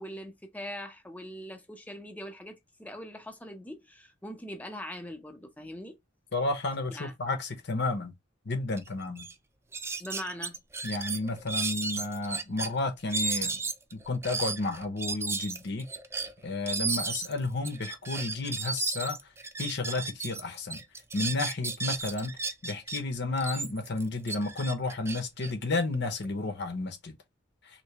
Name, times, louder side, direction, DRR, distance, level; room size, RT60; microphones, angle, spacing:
voice 1, 0.0-6.0 6.9-7.1 10.0-10.6, equal, 10° left, 0.8 m, -41 dB
voice 2, 6.3-8.1 8.5-9.3 10.8-13.6 13.9-15.9 16.4-19.2 19.6-20.8 21.1-22.3 22.6-27.1, left 3 dB, 60° left, 0.9 m, -32 dB
sound 1, 8.8-8.9 9.2-9.3 9.7-12.7 13.1-20.4 20.7-23.0 23.4-26.3, right 4 dB, 15° right, 0.3 m, -34 dB
3.3 x 2.9 x 2.9 m
head